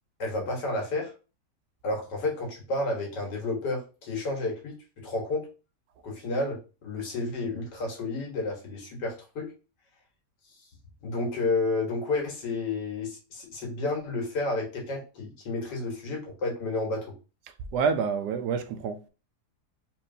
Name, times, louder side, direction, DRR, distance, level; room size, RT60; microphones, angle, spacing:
voice 1, 0.2-1.1 1.8-5.5 6.0-9.5 10.6-10.7 11.0-17.1, left 2 dB, 85° left, 1.9 m, -31 dB
voice 2, 17.7-19.1, right 6 dB, 80° right, 1.1 m, -27 dB
4.4 x 3.1 x 2.6 m
omnidirectional pair, 1.8 m